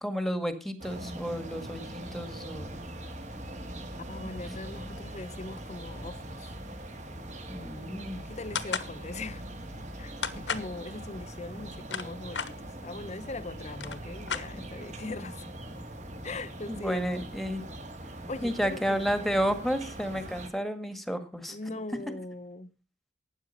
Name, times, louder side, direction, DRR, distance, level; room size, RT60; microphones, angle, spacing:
voice 1, 0.0-2.8 4.5-4.6 7.5-8.2 16.7-17.6 18.4-21.6 22.1-22.2, equal, ahead, 1.7 m, -31 dB
sound 1, 0.8-20.5, right 1 dB, 40° right, 2.4 m, -42 dB
voice 2, 4.1-6.5 8.2-9.4 10.0-15.5 16.2-17.3 18.3-19.0 21.5-22.7, left 2 dB, 40° left, 0.9 m, -40 dB
sound 2, 8.5-8.9 10.2-10.7 11.6-12.5 13.3-13.4 13.7-14.9, left 6 dB, 85° left, 1.3 m, -33 dB
12.5 x 9.4 x 5.5 m
head